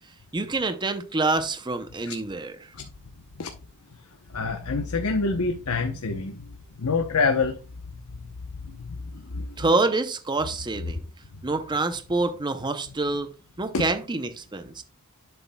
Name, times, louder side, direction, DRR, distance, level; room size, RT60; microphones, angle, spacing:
voice 1, 0.3-2.7 9.6-11.0 11.4-13.3 13.6-14.8, right 3 dB, 20° right, 0.6 m, -26 dB
voice 2, 4.3-6.4 6.8-7.5 13.7-13.8, left 4 dB, 80° left, 0.9 m, -25 dB
11.0 x 7.0 x 2.2 m
head